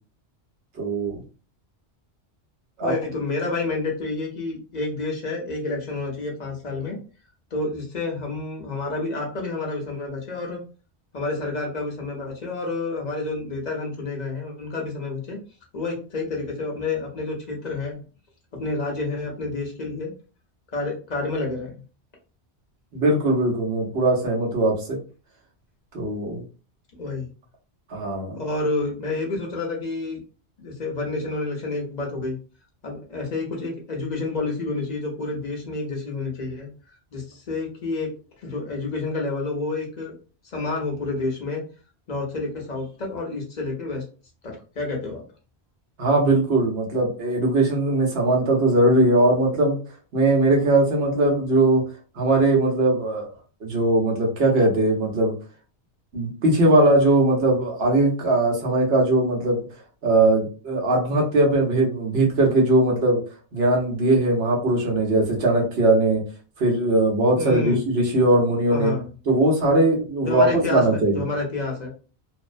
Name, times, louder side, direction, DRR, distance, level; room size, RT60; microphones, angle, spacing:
voice 1, 0.8-1.2 2.8-2.9 22.9-25.0 25.9-26.4 27.9-28.4 46.0-49.8 50.1-51.8 52.2-53.3 53.6-55.3 56.1-59.6 60.0-63.2 63.5-66.2 66.6-68.9 69.3-71.2, right 2 dB, 65° right, -1 dB, 1.1 m, -20 dB
voice 2, 2.8-7.0 7.5-10.6 11.1-15.4 15.7-18.0 18.5-20.1 20.7-21.8 26.9-27.3 28.3-30.2 30.6-32.4 32.8-36.7 37.1-38.1 38.4-40.1 40.4-41.6 42.1-44.0 44.4-45.2 67.4-67.8 68.7-69.1 69.7-69.8 70.2-71.9, left 3 dB, 45° left, 0 dB, 0.8 m, -29 dB
2.6 x 2.0 x 2.5 m, 0.36 s
omnidirectional pair, 1.1 m